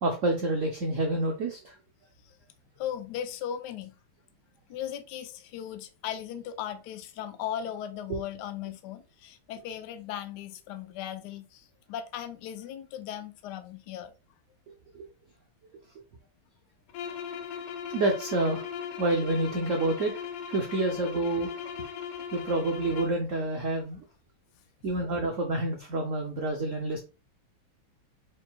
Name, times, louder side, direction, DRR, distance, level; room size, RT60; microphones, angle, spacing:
voice 1, 0.0-1.7 8.1-8.2 17.9-18.6 19.0-20.2 20.5-21.5 22.3-24.0 24.8-27.0, right 2 dB, 80° right, 0.7 m, -28 dB
voice 2, 2.8-3.9 4.7-14.1, left 10 dB, 75° left, 1.0 m, -37 dB
sound 1, 16.9-23.3, left 8 dB, 90° left, 1.5 m, -38 dB
4.5 x 3.8 x 2.2 m
omnidirectional pair, 2.3 m